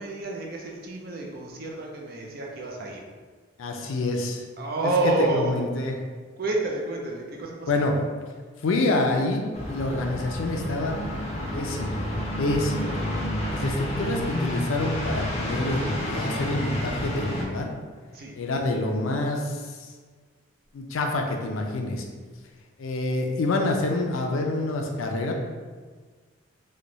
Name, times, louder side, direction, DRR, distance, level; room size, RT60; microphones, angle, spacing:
voice 1, 0.0-3.0 4.6-5.5 6.4-7.8 18.1-18.3, right 2 dB, 45° right, -1 dB, 0.5 m, -29 dB
voice 2, 3.6-4.4 4.8-6.0 7.7-8.0 8.6-12.1 12.4-13.1 13.5-17.7 18.3-19.9 20.7-22.0 22.8-25.3, left 2 dB, 85° left, 2 dB, 0.4 m, -27 dB
sound 1, 9.5-17.4, left 1 dB, 30° left, 0.6 m, -30 dB
3.2 x 2.2 x 3.8 m, 1.5 s
head